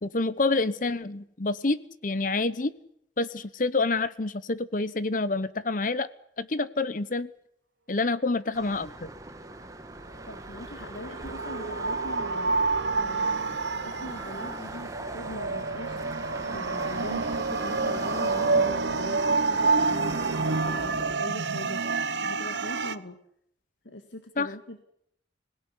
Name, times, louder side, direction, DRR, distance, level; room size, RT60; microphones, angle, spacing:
voice 1, 0.0-2.7 3.2-6.1 6.4-7.3 7.9-9.1 24.4-24.5, left 3 dB, 45° left, 16 dB, 0.9 m, -27 dB
sound 1, 8.5-21.1, right 2 dB, 20° right, 1.4 m, -40 dB
voice 2, 10.3-13.5 13.8-23.2 23.8-24.8, left 1 dB, 80° left, 7 dB, 1.7 m, -42 dB
sound 2, 10.7-23.0, right 4 dB, 70° right, 0.9 m, -28 dB
25.5 x 17.0 x 9.7 m, 0.74 s
head